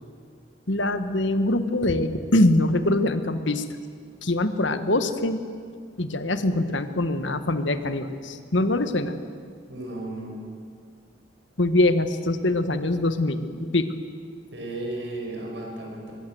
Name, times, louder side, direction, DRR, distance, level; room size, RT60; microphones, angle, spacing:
voice 1, 0.7-3.6 4.2-5.4 6.0-9.2 11.6-13.9, left 1 dB, 75° left, 10 dB, 1.4 m, -23 dB
voice 2, 9.7-10.4 14.5-16.1, right 2 dB, 65° right, 1 dB, 6.1 m, -34 dB
24.0 x 21.5 x 7.9 m, 2.1 s
head